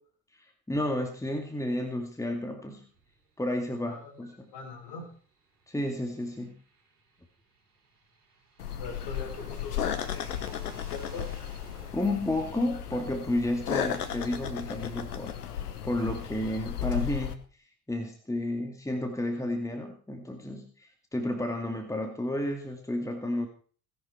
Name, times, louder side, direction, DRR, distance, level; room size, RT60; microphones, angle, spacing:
voice 1, 0.3-2.8 3.4-4.5 5.7-6.5 11.9-15.4 15.8-17.4 17.9-23.5, left 1 dB, 5° left, 4 dB, 2.3 m, -31 dB
sound 1, 2.9-14.6, right 4 dB, 80° right, 5.8 m, -58 dB
voice 2, 4.5-5.1 8.7-11.3, left 4 dB, 60° left, 1 dB, 5.9 m, -42 dB
sound 2, 8.6-17.3, left 9 dB, 80° left, 1.2 m, -35 dB
18.0 x 11.0 x 4.5 m, 0.42 s
figure-of-eight pair, 50°, 45 cm